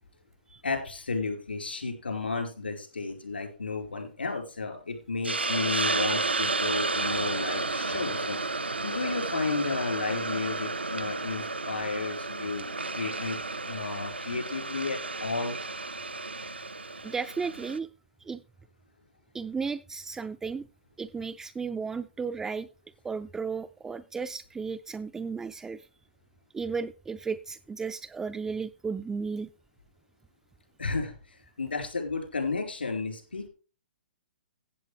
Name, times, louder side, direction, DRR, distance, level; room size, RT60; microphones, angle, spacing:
voice 1, 0.6-8.4 8.8-12.7 12.9-13.4 13.6-15.6 30.8-33.5, left 4 dB, 75° left, 4 dB, 4.5 m, -33 dB
Hiss, 5.2-17.8, right 3 dB, 85° right, 0.9 m, -32 dB
voice 2, 17.0-17.9 18.2-18.4 19.3-20.7 21.0-22.7 23.0-25.8 26.5-29.5, right 5 dB, 10° right, 9 dB, 0.4 m, -34 dB
15.5 x 8.0 x 3.4 m, 0.34 s
figure-of-eight pair, 120°, 6 cm